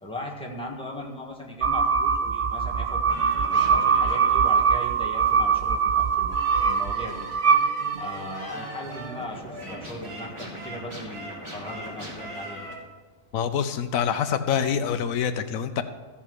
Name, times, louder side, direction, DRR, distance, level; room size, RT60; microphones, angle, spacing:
voice 1, 0.0-3.0 3.5-7.3 8.0-12.7, left 1 dB, 5° left, -1 dB, 1.5 m, -38 dB
sound 1, 1.6-8.4, right 6 dB, 55° right, 0.6 m, -23 dB
sound 2, 3.0-12.7, right 1 dB, 20° right, 2.8 m, -40 dB
voice 2, 13.3-15.8, left 8 dB, 85° left, 9 dB, 1.1 m, -26 dB
14.5 x 5.7 x 6.3 m, 1.4 s
omnidirectional pair, 1.4 m